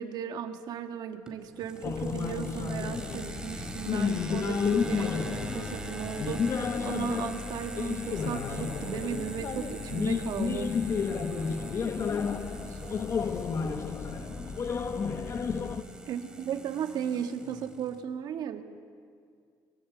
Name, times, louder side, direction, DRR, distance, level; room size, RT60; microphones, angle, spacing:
voice 1, 0.0-10.8 16.1-18.6, right 8 dB, 60° right, 6 dB, 1.8 m, -36 dB
sound 1, 1.3-18.0, right 2 dB, 10° right, 2.7 m, -43 dB
sound 2, 1.8-15.8, left 5 dB, 35° left, 1.2 m, -31 dB
voice 2, 11.8-14.5 15.5-16.0, right 5 dB, 40° right, 0 dB, 2.7 m, -53 dB
25.5 x 23.0 x 8.0 m, 2.2 s
cardioid pair, 145°, 8 cm